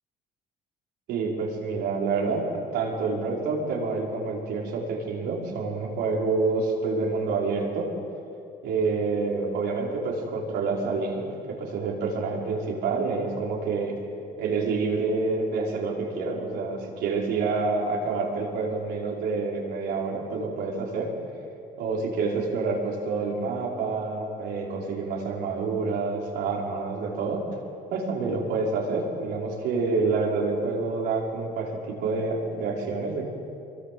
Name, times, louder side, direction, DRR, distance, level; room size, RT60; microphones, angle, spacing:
voice 1, 1.1-2.4 2.7-7.9 8.6-14.0 14.4-21.1 21.8-27.5 27.9-33.2, right 4 dB, 85° right, -2 dB, 5.7 m, -28 dB
25.5 x 23.5 x 8.0 m, 2.6 s
cardioid pair, 110°, 17 cm